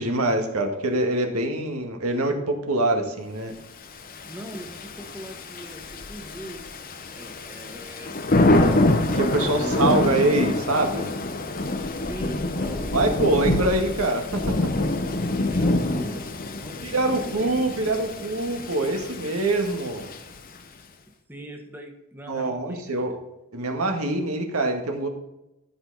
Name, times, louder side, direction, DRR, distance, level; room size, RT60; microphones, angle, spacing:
voice 1, 0.0-3.5 9.1-11.1 12.9-14.7 16.8-20.1 22.3-23.2 23.5-25.1, right 2 dB, 80° right, 4 dB, 1.8 m, -24 dB
Thunder / Rain, 4.0-20.6, left 2 dB, 40° left, 0.9 m, -26 dB
voice 2, 4.2-6.6 7.1-8.2 9.5-9.9 11.9-13.7 15.5-17.5 21.3-23.1, right 1 dB, 10° right, 2 dB, 1.5 m, -40 dB
14.0 x 5.6 x 4.1 m, 0.93 s
head